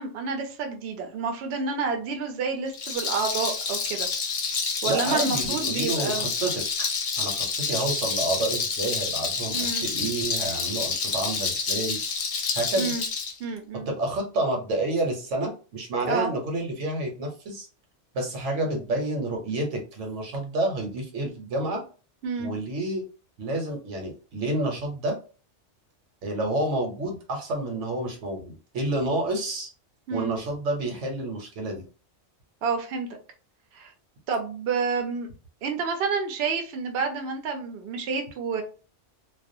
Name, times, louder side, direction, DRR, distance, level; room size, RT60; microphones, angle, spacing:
voice 1, 0.0-4.1 4.8-6.3 9.5-9.8 12.8-13.0 13.4-13.9 16.1-16.3 22.2-22.5 30.1-30.3 32.6-33.1 33.7-33.9 34.3-35.3 35.6-38.6, right 5 dB, 65° right, 4 dB, 0.7 m, -29 dB
Rattle, 2.7-13.3, left 5 dB, 60° left, 0.7 m, -28 dB
voice 2, 4.8-6.9 7.2-12.0 12.5-12.9 13.7-17.7 18.1-21.8 22.4-23.0 23.4-25.1 26.2-29.7 30.1-31.8, right 2 dB, 85° right, 2 dB, 1.1 m, -29 dB
2.4 x 2.2 x 2.6 m, 0.35 s
omnidirectional pair, 1.2 m